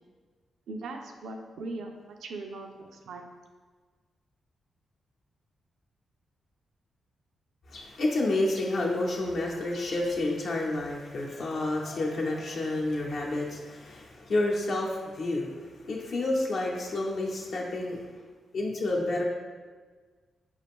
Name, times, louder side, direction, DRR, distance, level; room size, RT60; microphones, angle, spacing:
voice 1, 0.7-3.2, right 2 dB, 80° right, 4 dB, 0.4 m, -39 dB
voice 2, 7.7-18.0 18.5-19.2, left 2 dB, 70° left, -2 dB, 0.8 m, -30 dB
5.3 x 2.4 x 3.5 m, 1.4 s
cardioid pair, 65°, 0 cm